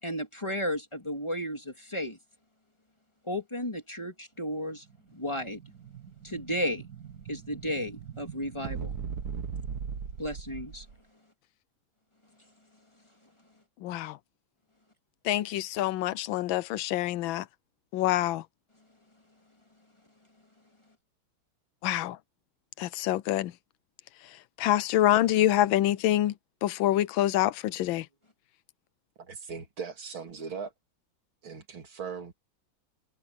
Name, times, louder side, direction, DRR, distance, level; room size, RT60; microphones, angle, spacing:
voice 1, 0.0-2.2 3.3-4.8 5.1-5.6 6.2-6.8 7.3-8.9 10.2-10.9, equal, 15° left, 2.6 m, -33 dB
Explosion, 4.9-11.0, right 6 dB, 55° right, 1.8 m, -39 dB
voice 2, 13.8-14.2 15.2-17.4 17.9-18.4 21.8-22.2 22.8-23.5 24.6-26.3 26.6-28.0, left 13 dB, 80° left, 1.4 m, -26 dB
voice 3, 29.2-30.7 31.4-32.3, right 6 dB, 90° right, 3.5 m, -39 dB
omnidirectional pair, 2.2 m